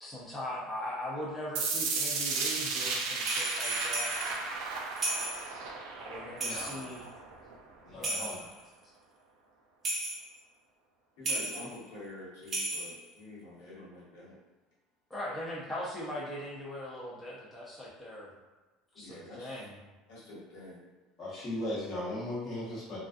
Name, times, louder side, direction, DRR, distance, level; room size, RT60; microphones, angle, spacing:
voice 1, 0.0-4.2 6.0-7.1 7.9-8.4 15.1-18.3 18.9-19.8, left 1 dB, 10° left, -7 dB, 0.5 m, -40 dB
sound 1, 1.5-7.5, right 4 dB, 80° right, 0.4 m, -34 dB
sound 2, 3.2-4.3 5.0-5.5 6.4-7.0 8.0-8.6 9.8-10.3 11.3-11.8 12.4-13.1, right 2 dB, 30° right, 0.6 m, -34 dB
voice 2, 6.4-6.9 7.8-8.4 21.2-23.0, left 1 dB, 30° left, -8 dB, 1.0 m, -37 dB
voice 3, 11.2-14.4 18.9-19.6 20.1-20.8, left 1 dB, 80° left, -8 dB, 1.3 m, -47 dB
2.3 x 2.2 x 2.5 m, 1.2 s
supercardioid pair, 125°, 0 cm